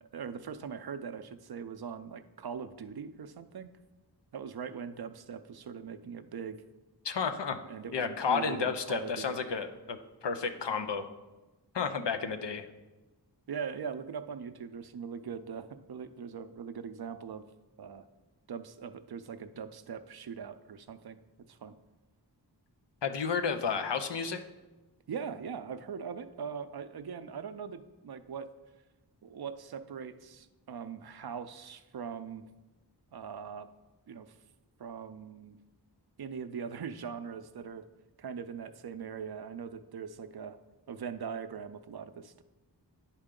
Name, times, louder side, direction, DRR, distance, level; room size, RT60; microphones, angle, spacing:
voice 1, 0.1-3.7 4.3-6.6 7.7-9.4 13.5-17.5 17.8-18.0 18.5-21.2 21.5-21.7 25.1-28.5 29.2-32.5 33.1-33.7 34.1-34.3 34.8-35.6 36.2-37.9 38.2-40.6 40.9-42.4, right 6 dB, 65° right, 11 dB, 0.5 m, -41 dB
voice 2, 7.0-7.6 7.9-11.1 11.7-12.7 23.0-24.4, left 5 dB, 80° left, 7 dB, 0.6 m, -32 dB
9.8 x 4.4 x 3.7 m, 1.1 s
wide cardioid pair, 50°, 42 cm